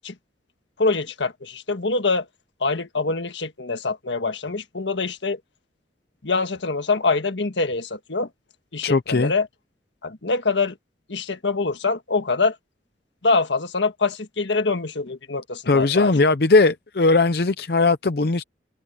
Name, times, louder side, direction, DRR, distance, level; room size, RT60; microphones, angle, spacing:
voice 1, 0.8-2.3 2.6-5.4 6.2-8.3 8.7-9.5 10.0-10.8 11.1-12.5 13.2-16.1, left 3 dB, 90° left, 1.6 m, -24 dB
voice 2, 8.8-9.3 15.7-18.4, left 3 dB, 60° left, 0.6 m, -19 dB
head